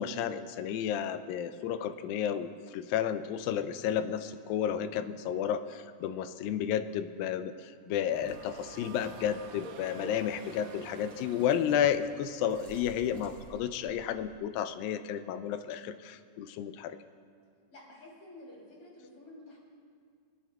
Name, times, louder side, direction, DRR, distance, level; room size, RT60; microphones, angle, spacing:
voice 1, 0.0-17.0, left 9 dB, 85° left, 10 dB, 2.3 m, -32 dB
sound 1, 8.0-13.2, right 5 dB, 85° right, 2.6 m, -51 dB
sound 2, 8.2-14.4, right 2 dB, 50° right, 2.5 m, -51 dB
voice 2, 17.7-19.6, left 1 dB, 40° left, -5 dB, 3.8 m, -51 dB
27.0 x 9.3 x 2.3 m, 2.2 s
omnidirectional pair, 4.0 m